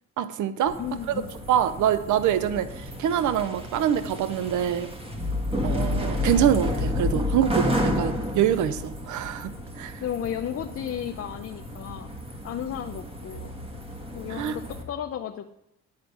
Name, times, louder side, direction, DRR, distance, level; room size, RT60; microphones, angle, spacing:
voice 1, 0.2-0.8 1.1-1.2 1.5-4.9 5.6-10.0 14.3-14.6, right 10 dB, 75° right, 13 dB, 0.6 m, -25 dB
sound 1, 0.7-14.8, left 1 dB, 20° right, 1.7 m, -31 dB
voice 2, 0.8-1.3 10.0-12.1 12.4-13.5 14.1-15.4, left 9 dB, 50° left, 6 dB, 0.6 m, -33 dB
10.5 x 4.4 x 6.9 m, 0.85 s
cardioid pair, 90°, 30 cm